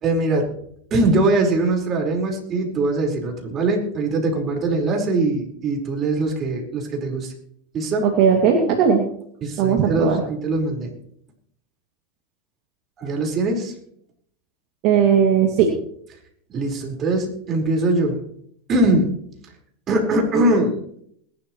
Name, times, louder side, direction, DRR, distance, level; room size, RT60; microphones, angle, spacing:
voice 1, 0.0-0.5 0.9-7.3 7.7-8.1 9.4-10.9 13.0-13.7 16.5-18.2 18.7-19.2 19.9-20.8, right 2 dB, 35° right, 1 dB, 4.8 m, -21 dB
voice 2, 8.0-9.0 9.6-10.2 14.8-15.7, right 7 dB, 55° right, 1 dB, 2.4 m, -17 dB
21.0 x 12.0 x 3.2 m, 0.67 s
hypercardioid pair, 105°, 0 cm